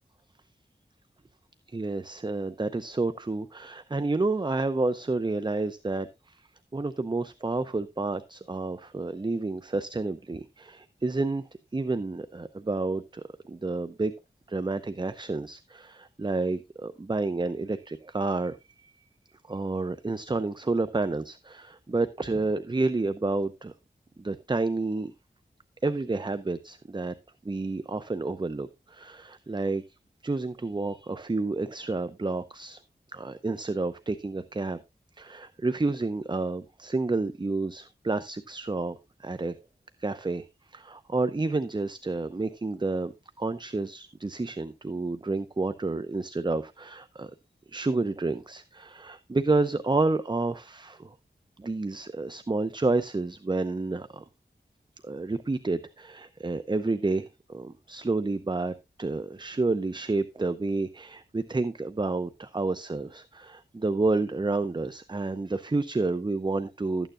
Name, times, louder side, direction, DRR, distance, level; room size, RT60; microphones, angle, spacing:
voice 1, 1.7-6.4 6.7-11.4 11.7-14.1 14.5-18.9 19.5-23.7 24.2-25.1 25.8-27.1 27.4-29.8 30.2-32.8 33.1-34.8 35.2-39.5 40.0-40.5 40.7-43.1 43.4-47.3 47.7-51.1 51.6-54.2 55.0-67.1, right 3 dB, 25° right, 13 dB, 0.6 m, -30 dB
12.5 x 9.1 x 2.5 m, 0.23 s
wide cardioid pair, 50°, 18 cm